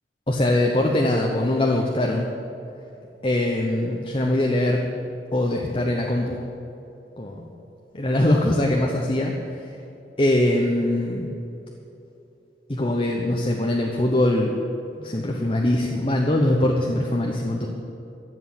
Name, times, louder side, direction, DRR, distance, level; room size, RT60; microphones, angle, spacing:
voice 1, 0.3-2.3 3.2-4.9 5.3-6.4 7.2-7.5 7.9-9.3 10.2-11.3 12.7-14.5 15.0-17.7, left 1 dB, 30° left, 0 dB, 1.0 m, -22 dB
14.0 x 8.0 x 7.9 m, 2.9 s
head